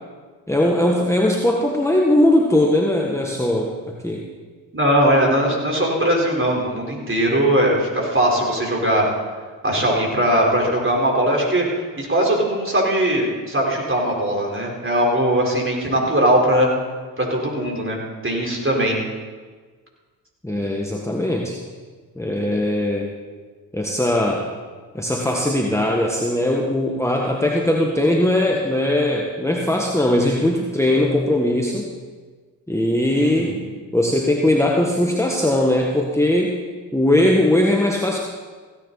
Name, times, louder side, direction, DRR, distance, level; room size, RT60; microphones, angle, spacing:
voice 1, 0.5-3.7 4.0-4.2 20.4-21.6 22.2-23.1 23.7-24.5 24.9-31.9 32.7-33.6 33.9-36.6 36.9-38.2, left 1 dB, 5° left, -1 dB, 1.7 m, -19 dB
voice 2, 4.7-9.1 9.6-11.7 12.0-16.7 17.2-19.0 33.2-33.5, right 1 dB, 25° right, -2 dB, 4.6 m, -20 dB
16.0 x 9.8 x 4.2 m, 1.4 s
hypercardioid pair, 40°, 50 cm